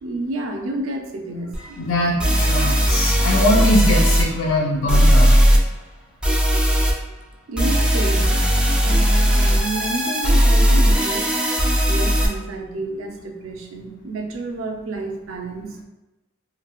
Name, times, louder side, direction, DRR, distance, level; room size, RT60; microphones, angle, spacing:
voice 1, 0.0-1.8 7.5-8.4 8.8-11.3 11.8-15.8, right 2 dB, 85° right, 2 dB, 0.5 m, -30 dB
sound 1, 1.5-1.6 2.2-4.2 4.9-5.6 6.2-6.9 7.6-12.3, equal, 5° right, 0.3 m, -17 dB
voice 2, 1.8-5.3, left 1 dB, 85° left, -3 dB, 0.6 m, -21 dB
3.2 x 2.2 x 2.3 m, 0.99 s
head